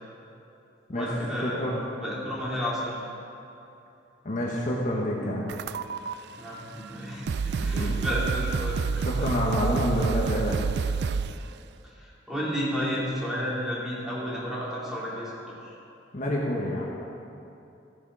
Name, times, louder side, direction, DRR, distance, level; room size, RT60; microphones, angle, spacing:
voice 1, 0.9-3.0 6.4-9.3 10.1-10.2 11.8-15.7, equal, ahead, -8 dB, 3.2 m, -32 dB
voice 2, 1.4-1.8 4.2-5.5 7.6-8.0 9.0-10.6 16.1-16.8, left 1 dB, 45° left, -3 dB, 1.3 m, -28 dB
sound 1, 5.5-6.1 6.9-7.0 7.3-11.5, right 5 dB, 60° right, 0.3 m, -28 dB
14.5 x 8.2 x 5.5 m, 2.8 s
head